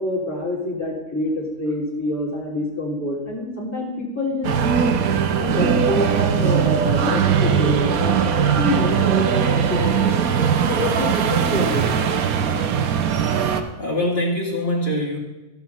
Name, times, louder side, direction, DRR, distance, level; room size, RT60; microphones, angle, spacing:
voice 1, 0.0-5.0 5.4-10.3 10.7-11.9, left 1 dB, 10° left, -6 dB, 3.0 m, -26 dB
sound 1, 4.4-13.6, right 7 dB, 75° right, 1.2 m, -20 dB
voice 2, 13.4-15.2, left 1 dB, 35° left, -3 dB, 2.4 m, -24 dB
14.5 x 5.9 x 5.8 m, 1.1 s
omnidirectional pair, 1.5 m